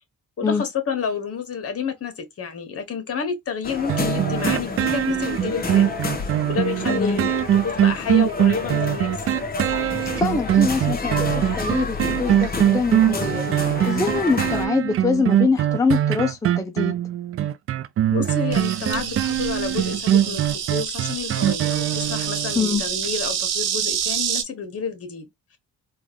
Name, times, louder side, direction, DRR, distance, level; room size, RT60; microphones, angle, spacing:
voice 1, 0.4-9.2 18.1-20.4 20.7-25.3, left 6 dB, 50° left, 1.4 m, -30 dB
sound 1, 3.6-14.7, left 3 dB, 30° left, 1.1 m, -30 dB
sound 2, 3.9-22.6 23.0-23.1, right 11 dB, 50° right, 0.4 m, -22 dB
voice 2, 6.9-7.3 10.1-17.0 22.5-22.8, left 4 dB, 10° left, 0.5 m, -24 dB
Insect, 18.5-24.4, right 8 dB, 85° right, 1.0 m, -28 dB
3.8 x 2.5 x 3.0 m
cardioid pair, 90°, 30 cm